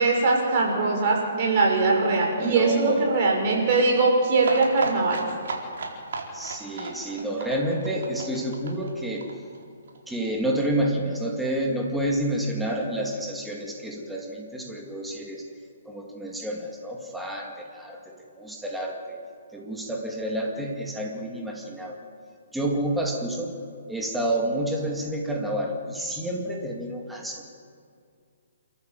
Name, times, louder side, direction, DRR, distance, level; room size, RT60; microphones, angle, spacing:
voice 1, 0.0-5.2, right 3 dB, 40° right, 0 dB, 6.1 m, -21 dB
voice 2, 2.4-3.4 6.3-9.3 10.1-15.4 15.9-19.2 19.5-22.0 22.5-23.5 23.9-27.5, right 1 dB, 5° right, -1 dB, 2.3 m, -29 dB
sound 1, 4.4-10.0 10.2-10.3 10.6-10.7 10.9-11.0, right 3 dB, 65° right, 4.4 m, -34 dB
28.5 x 13.5 x 7.8 m, 2.3 s
hypercardioid pair, 155°, 0 cm